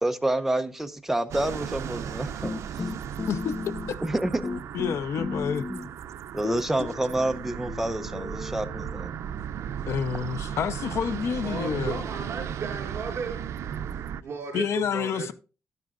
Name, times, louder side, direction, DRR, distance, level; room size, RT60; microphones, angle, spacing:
voice 1, 0.0-2.6 4.0-4.4 5.7-5.8 6.3-9.1, right 1 dB, 5° right, 0.7 m, -28 dB
sound 1, 1.3-14.2, right 9 dB, 85° right, 0.5 m, -36 dB
sound 2, 2.4-4.2 4.4-6.0 6.4-9.1, left 4 dB, 30° left, 0.4 m, -36 dB
voice 2, 4.7-5.7 9.9-12.0 14.5-15.3, left 7 dB, 75° left, 0.7 m, -28 dB
voice 3, 11.4-13.4 14.2-15.3, right 5 dB, 60° right, 4.5 m, -35 dB
12.0 x 10.5 x 2.4 m
wide cardioid pair, 150°, 5 cm